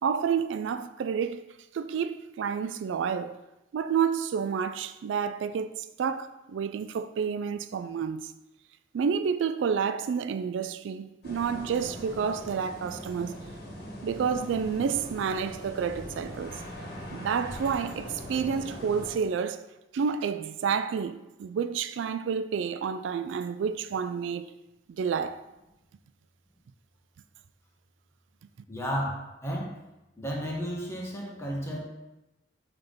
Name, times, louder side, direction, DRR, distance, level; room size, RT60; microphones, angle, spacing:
voice 1, 0.0-1.4 1.7-3.4 3.7-8.3 8.9-13.4 14.0-16.6 17.1-19.6 19.9-24.5 24.9-25.4, right 6 dB, 75° right, 0.3 m, -29 dB
sound 1, 11.2-19.1, equal, 60° left, 1.7 m, -41 dB
voice 2, 28.7-29.8 30.2-31.8, equal, 15° left, 1.3 m, -33 dB
5.7 x 3.5 x 5.4 m
head